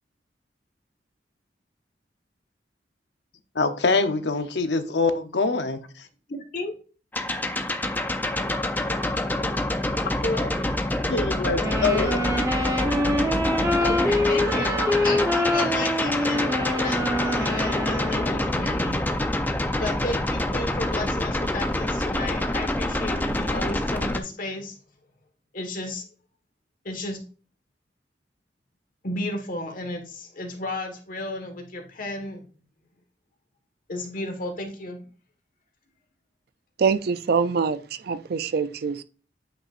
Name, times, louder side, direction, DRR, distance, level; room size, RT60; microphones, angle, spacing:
voice 1, 3.5-5.8 11.1-12.2, left 3 dB, 70° left, 0.8 m, -24 dB
voice 2, 6.3-6.7 8.8-8.9 9.2-9.5 10.2-10.5 13.8-19.0 19.8-24.8 25.5-26.0 26.8-27.2 29.0-32.4 33.9-35.0, left 2 dB, 50° left, 1.5 m, -33 dB
sound 1, 7.1-24.2, left 1 dB, 10° left, 0.5 m, -26 dB
sound 2, 11.6-18.7, left 1 dB, 20° right, 0.8 m, -25 dB
voice 3, 36.8-39.0, right 5 dB, 60° right, 0.4 m, -24 dB
8.7 x 5.5 x 2.5 m
head